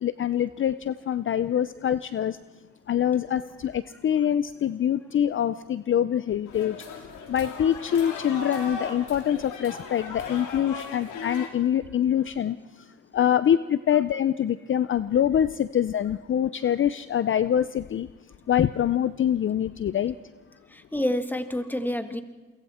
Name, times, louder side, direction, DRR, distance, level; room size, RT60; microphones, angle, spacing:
voice 1, 0.0-2.4 2.9-6.8 7.3-12.6 13.1-18.1 18.5-20.1, left 10 dB, 40° left, 14 dB, 0.6 m, -25 dB
sound 1, 6.5-11.5, left 4 dB, 80° left, 3.6 m, -37 dB
voice 2, 13.9-14.4 20.7-22.2, left 1 dB, 5° left, 8 dB, 1.7 m, -30 dB
28.0 x 23.0 x 4.3 m, 1.3 s
cardioid pair, 90°, 30 cm